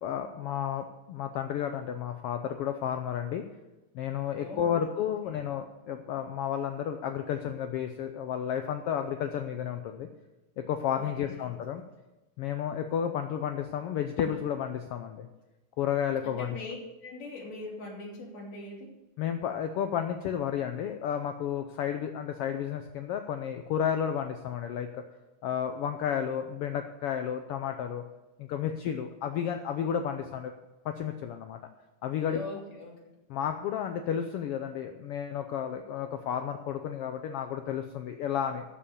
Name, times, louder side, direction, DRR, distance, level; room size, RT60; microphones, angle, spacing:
voice 1, 0.0-3.4 3.9-10.1 10.6-11.8 12.4-15.3 15.8-16.6 19.2-25.0 25.4-28.0 28.4-30.5 30.8-31.6 32.0-32.4 33.3-38.6, left 9 dB, 80° left, 7 dB, 1.3 m, -32 dB
voice 2, 4.3-5.4 11.0-11.5 16.2-16.8 17.0-18.9 32.2-33.1, left 3 dB, 60° left, -3 dB, 4.4 m, -42 dB
12.5 x 6.9 x 7.0 m, 1.1 s
omnidirectional pair, 3.4 m